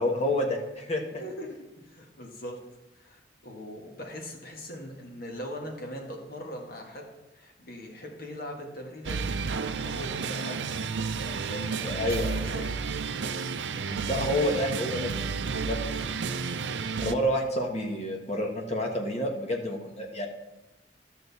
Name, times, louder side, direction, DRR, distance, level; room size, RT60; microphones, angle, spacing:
voice 1, 0.0-1.0 11.8-12.3 13.9-15.8 16.1-16.2 16.7-20.3, left 1 dB, 35° left, 1 dB, 1.4 m, -29 dB
voice 2, 1.2-1.5 1.8-2.6 2.9-7.0 7.3-10.8 11.1-12.8, equal, 55° left, 1 dB, 1.8 m, -41 dB
sound 1, 9.0-17.1, right 5 dB, 80° right, 0.5 m, -31 dB
12.0 x 6.6 x 4.1 m, 0.99 s
head